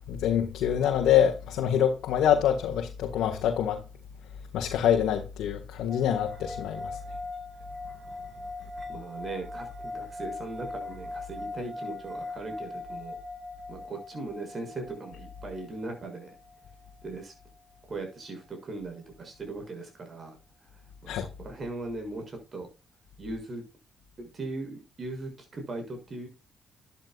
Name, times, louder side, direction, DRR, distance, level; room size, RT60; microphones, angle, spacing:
voice 1, 0.1-3.8 4.5-7.0 21.1-21.3, left 9 dB, 85° left, 1.7 m, -25 dB
sound 1, 5.9-17.2, left 2 dB, 25° right, 2.9 m, -41 dB
voice 2, 8.9-13.1 13.7-16.3 17.0-17.3 17.9-20.4 21.0-22.7 23.2-23.6 24.2-26.3, right 2 dB, 40° right, 6.7 m, -39 dB
12.0 x 10.5 x 2.5 m
cardioid pair, 90°, 0 cm